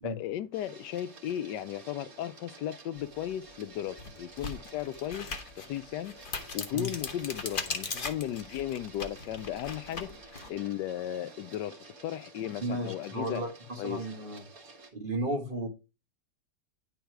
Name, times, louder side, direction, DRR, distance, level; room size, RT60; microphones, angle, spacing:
voice 1, 0.0-6.2 6.5-13.4 13.8-14.0, left 11 dB, 85° left, 1.2 m, -36 dB
Printer, 0.5-14.9, right 3 dB, 55° right, 2.1 m, -51 dB
sound 1, 3.2-3.3 3.9-10.5, left 4 dB, 35° left, 1.1 m, -39 dB
voice 2, 12.6-14.4 14.9-15.7, right 1 dB, 30° right, 1.7 m, -34 dB
11.0 x 4.0 x 4.7 m
omnidirectional pair, 1.8 m